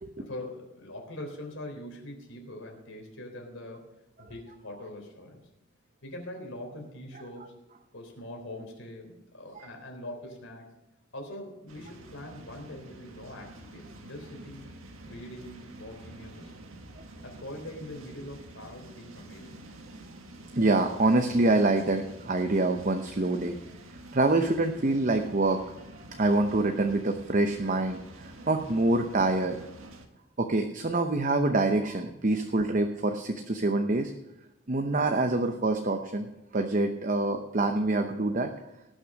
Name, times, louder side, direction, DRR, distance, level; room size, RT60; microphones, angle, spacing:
voice 1, 0.2-3.9 4.2-5.4 6.0-7.5 7.9-10.7 11.1-14.7 15.1-16.5 17.2-19.6 32.3-32.6, left 1 dB, 70° left, 2 dB, 3.6 m, -43 dB
sound 1, 11.7-30.1, right 1 dB, 85° right, 1.7 m, -48 dB
voice 2, 20.6-23.6 24.1-25.6 26.1-29.6 30.4-34.1 34.7-38.6, right 2 dB, 40° right, 5 dB, 0.8 m, -26 dB
18.5 x 6.3 x 6.4 m, 0.94 s
head